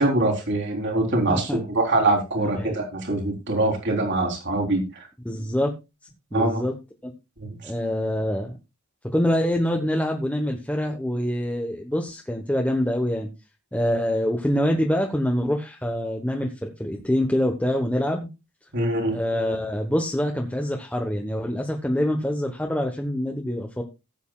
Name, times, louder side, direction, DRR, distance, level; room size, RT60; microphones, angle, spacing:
voice 1, 0.0-5.1 6.3-6.6 7.4-7.7 18.7-19.2, right 2 dB, 55° right, 1 dB, 3.5 m, -24 dB
voice 2, 1.3-1.6 2.4-2.7 5.2-5.7 6.3-6.7 7.0-7.1 7.6-8.6 9.0-13.3 13.7-18.3 19.1-23.8, equal, 5° left, 2 dB, 1.1 m, -25 dB
17.5 x 8.1 x 2.3 m, 0.25 s
head